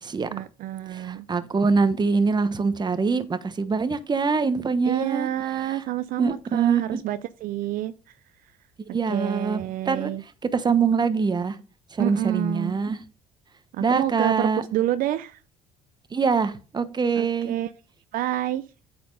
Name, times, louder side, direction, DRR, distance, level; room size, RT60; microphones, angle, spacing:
voice 1, 0.3-1.3 4.9-7.9 9.1-10.2 12.0-12.8 13.7-15.4 17.2-17.7 18.1-18.7, right 13 dB, 65° right, 0.5 m, -28 dB
voice 2, 0.9-5.3 5.6-5.8 6.2-7.0 8.9-10.1 10.5-11.6 11.9-13.0 13.8-14.6 16.1-17.5, right 5 dB, 25° right, 1.0 m, -24 dB
8.5 x 4.3 x 5.3 m
supercardioid pair, 80°, 16 cm